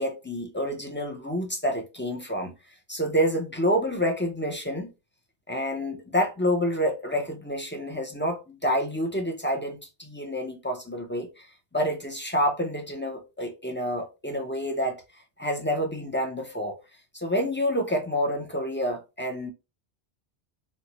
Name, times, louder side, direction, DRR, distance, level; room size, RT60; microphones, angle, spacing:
voice 1, 0.0-2.5 2.9-4.9 5.5-11.5 11.7-15.0 15.4-16.8 17.1-19.5, equal, 15° left, 0.4 m, -28 dB
4.5 x 2.1 x 2.8 m
omnidirectional pair, 1.1 m